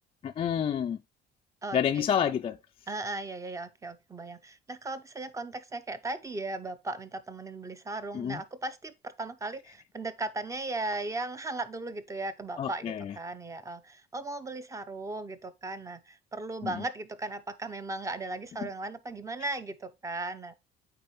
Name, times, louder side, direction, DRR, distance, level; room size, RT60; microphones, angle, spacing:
voice 1, 0.2-1.0 1.7-2.6 8.1-8.4 12.6-13.1, left 8 dB, 35° left, 0.3 m, -28 dB
voice 2, 1.6-2.0 2.9-20.5, right 2 dB, 20° right, 0.7 m, -37 dB
8.7 x 3.8 x 3.2 m
cardioid pair, 120°, 18 cm